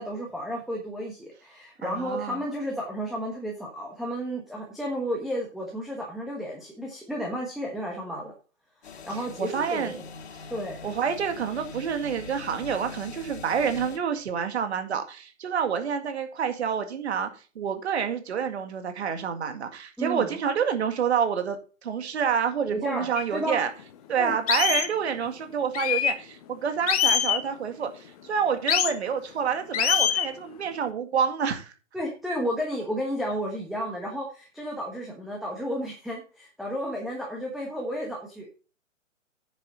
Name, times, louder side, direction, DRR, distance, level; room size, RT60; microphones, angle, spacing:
voice 1, 0.0-8.3 8.8-9.9 10.5-10.8 20.0-20.3 22.6-23.6 24.2-24.3 31.9-38.5, equal, ahead, 1.2 m, -32 dB
voice 2, 1.8-2.4 9.2-10.0 10.8-17.3 17.6-23.7 24.1-31.7, right 7 dB, 55° right, 2.0 m, -28 dB
sound 1, 8.8-14.0, left 4 dB, 55° left, 2.4 m, -42 dB
sound 2, 23.2-23.3 23.8-23.9 24.5-24.9 25.7-26.2 26.9-27.4 28.7-28.9 29.7-30.3, left 10 dB, 30° left, 0.8 m, -23 dB
9.8 x 7.2 x 4.2 m
hypercardioid pair, 140°, 38 cm